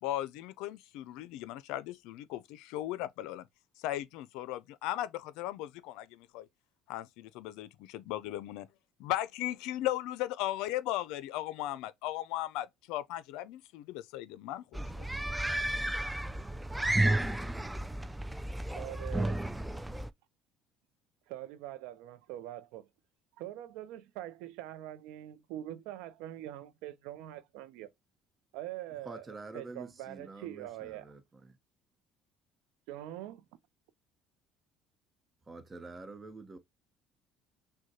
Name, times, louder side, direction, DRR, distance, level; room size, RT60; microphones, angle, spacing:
voice 1, 0.0-3.5 3.8-6.5 6.9-8.7 9.0-15.1, left 14 dB, 80° left, 0.4 m, -37 dB
sound 1, 14.7-20.1, right 1 dB, 5° right, 0.3 m, -32 dB
voice 2, 18.7-19.4 21.3-22.9 23.4-27.9 28.5-29.2 29.5-31.1 32.9-33.4, right 13 dB, 85° right, 0.5 m, -43 dB
voice 3, 29.0-31.6 35.5-36.6, right 3 dB, 25° right, 0.9 m, -47 dB
6.3 x 2.2 x 2.8 m
supercardioid pair, 95°, 0 cm